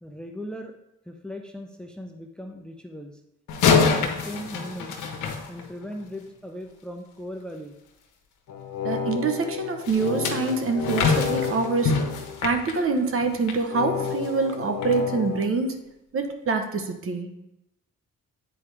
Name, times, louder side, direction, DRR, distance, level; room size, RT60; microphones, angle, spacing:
voice 1, 0.0-0.7 1.1-3.2 3.7-5.0 5.5-7.7, equal, 5° left, 4 dB, 0.6 m, -38 dB
sound 1, 3.5-6.1 9.8-13.6 14.0-14.3 14.8-14.9, left 5 dB, 85° left, 1.1 m, -25 dB
sound 2, 8.5-12.8 13.7-15.5, left 6 dB, 60° left, 0.9 m, -31 dB
voice 2, 8.8-11.9 12.4-15.8 16.1-17.3, right 4 dB, 45° right, 5 dB, 1.0 m, -25 dB
8.6 x 4.8 x 3.4 m, 0.89 s
cardioid pair, 90°, 30 cm